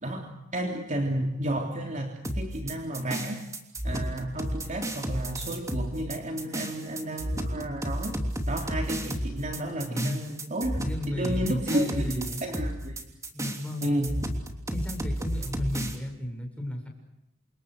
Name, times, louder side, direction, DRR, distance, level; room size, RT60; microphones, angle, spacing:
voice 1, 0.0-3.4 3.8-8.2 8.5-13.0 13.8-14.1, right 1 dB, 35° right, 2 dB, 3.2 m, -32 dB
sound 1, 2.2-16.0, right 1 dB, 15° right, 3.1 m, -32 dB
voice 2, 9.8-10.2 10.8-12.4 13.3-14.0 14.7-16.9, left 1 dB, 5° left, 3 dB, 7.0 m, -34 dB
29.5 x 27.0 x 6.5 m, 0.85 s
head